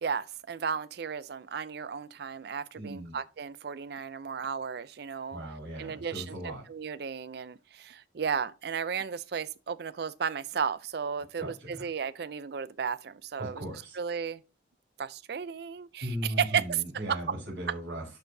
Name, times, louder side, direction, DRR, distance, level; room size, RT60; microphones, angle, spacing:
voice 1, 0.0-5.4 5.8-6.4 6.7-13.6 13.9-14.4 15.0-16.8 17.1-17.2, right 6 dB, 60° right, 0.4 m, -34 dB
voice 2, 2.7-3.2 5.3-6.6 11.4-11.8 13.4-14.0 16.0-18.1, right 1 dB, 85° right, 4.1 m, -37 dB
11.5 x 4.5 x 2.7 m
head